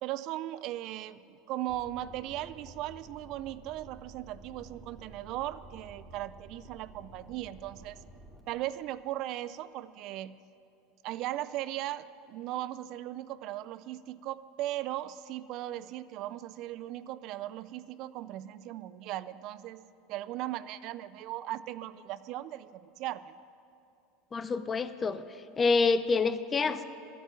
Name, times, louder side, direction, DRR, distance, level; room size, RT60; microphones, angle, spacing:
voice 1, 0.0-8.0 8.5-10.4 11.0-19.8 20.1-23.3, right 14 dB, 55° right, 16 dB, 0.4 m, -38 dB
sound 1, 1.7-8.4, right 2 dB, 5° right, 2.7 m, -52 dB
voice 2, 24.3-25.2 25.6-26.8, left 4 dB, 25° left, 13 dB, 0.6 m, -27 dB
11.5 x 8.9 x 9.0 m, 2.6 s
supercardioid pair, 115°, 0 cm